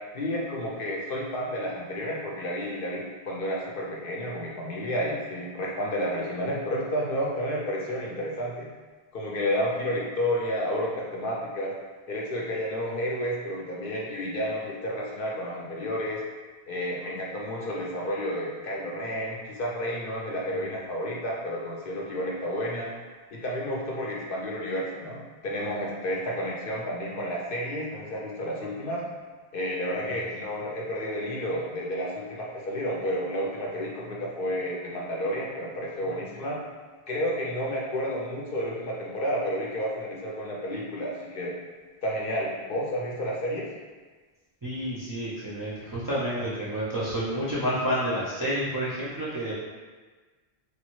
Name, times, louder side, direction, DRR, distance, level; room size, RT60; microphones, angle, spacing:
voice 1, 0.1-8.7 9.1-11.7 12.1-16.2 16.7-22.9 23.3-29.0 29.5-36.6 37.1-41.5 42.0-43.7, equal, 65° left, -3 dB, 0.7 m, -31 dB
voice 2, 44.6-49.5, equal, 30° right, -9 dB, 0.4 m, -29 dB
3.0 x 2.2 x 3.0 m, 1.4 s
omnidirectional pair, 1.1 m